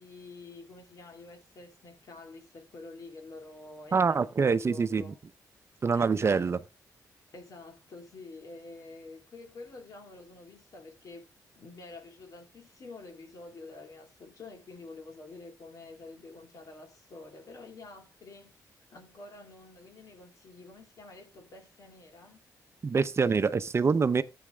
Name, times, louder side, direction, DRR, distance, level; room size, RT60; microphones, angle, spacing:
voice 1, 0.0-5.2 5.9-6.5 7.3-22.4, left 3 dB, 60° left, 2.6 m, -48 dB
voice 2, 3.9-5.0 5.8-6.6 22.8-24.2, right 5 dB, 40° right, 0.7 m, -25 dB
13.5 x 8.7 x 2.3 m
cardioid pair, 75°, 7 cm